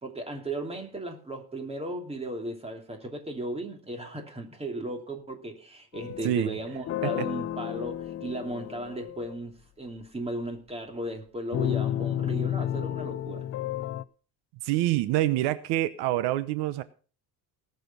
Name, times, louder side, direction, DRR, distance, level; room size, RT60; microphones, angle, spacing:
voice 1, 0.0-13.5, right 1 dB, 15° right, 2.7 m, -36 dB
sound 1, 5.9-9.4 11.5-14.0, left 11 dB, 40° left, 0.5 m, -32 dB
voice 2, 14.6-16.8, right 15 dB, 80° right, 1.0 m, -26 dB
18.5 x 6.9 x 5.4 m
cardioid pair, 130°, 39 cm